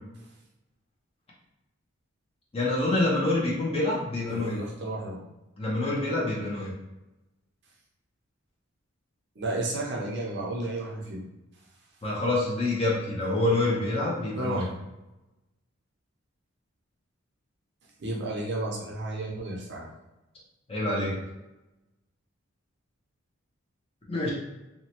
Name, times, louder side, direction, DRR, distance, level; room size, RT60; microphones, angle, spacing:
voice 1, 2.5-4.6 5.6-6.7 12.0-14.6 20.7-21.2 24.1-24.3, left 2 dB, 25° left, -5 dB, 0.6 m, -26 dB
voice 2, 4.3-5.2 9.4-11.2 14.4-14.7 18.0-19.9, right 2 dB, 55° right, -2 dB, 0.6 m, -32 dB
2.9 x 2.1 x 2.8 m, 1.0 s
head